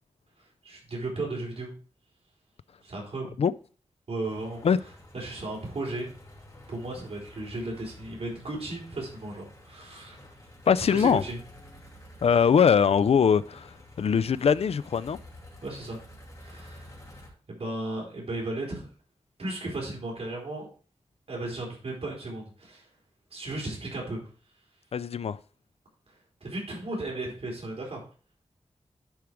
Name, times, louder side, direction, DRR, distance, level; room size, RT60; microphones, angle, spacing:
voice 1, 0.6-1.7 2.8-3.3 4.1-4.6 5.1-6.1 6.7-10.2 10.9-11.4 15.6-16.0 16.4-18.9 19.4-20.7 21.3-22.8 23.3-24.3 26.4-28.0, right 2 dB, 75° right, 4.4 m, -35 dB
sound 1, 4.2-17.3, left 1 dB, 30° left, 2.6 m, -50 dB
voice 2, 10.7-11.2 12.2-15.2 24.9-25.4, left 7 dB, 75° left, 0.4 m, -22 dB
10.5 x 5.0 x 4.5 m
wide cardioid pair, 105°, 10 cm